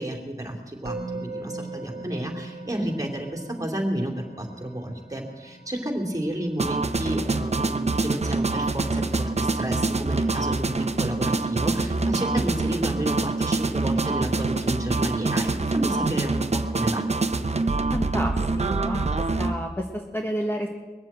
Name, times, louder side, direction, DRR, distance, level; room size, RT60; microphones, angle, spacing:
voice 1, 0.0-17.1, right 1 dB, 20° right, 2 dB, 2.9 m, -31 dB
Musical instrument, 0.9-12.0, right 3 dB, 65° right, 1.5 m, -43 dB
sound 1, 6.6-19.5, right 3 dB, 40° right, 0.9 m, -25 dB
voice 2, 17.9-20.7, equal, 15° left, 2 dB, 1.4 m, -30 dB
21.0 x 7.5 x 8.7 m, 1.3 s
wide cardioid pair, 80°, 17 cm